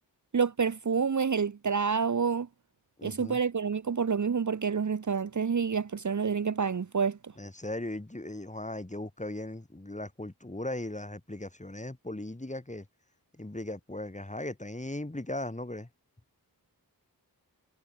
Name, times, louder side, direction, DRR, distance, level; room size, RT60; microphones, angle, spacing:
voice 1, 0.3-2.5 3.0-7.3, right 6 dB, 50° right, 1.0 m, -28 dB
voice 2, 3.0-3.4 7.4-12.9 13.4-15.9, left 1 dB, 20° left, 7.4 m, -38 dB
wide cardioid pair, 90°, 37 cm